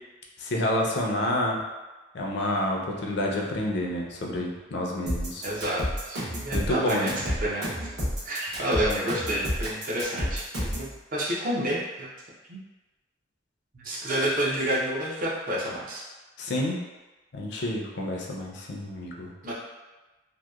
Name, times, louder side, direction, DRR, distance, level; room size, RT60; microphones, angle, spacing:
voice 1, 0.4-1.6 2.1-5.4 6.5-7.3 16.4-16.8 17.3-19.3, left 1 dB, 60° left, -1 dB, 0.4 m, -29 dB
sound 1, 5.1-10.9, equal, 65° right, 0.9 m, -30 dB
voice 2, 5.4-7.7 8.2-12.1 12.5-12.6 13.7-16.0 19.4-19.5, right 1 dB, 45° right, -5 dB, 0.5 m, -29 dB
2.8 x 2.0 x 2.3 m, 1.1 s
head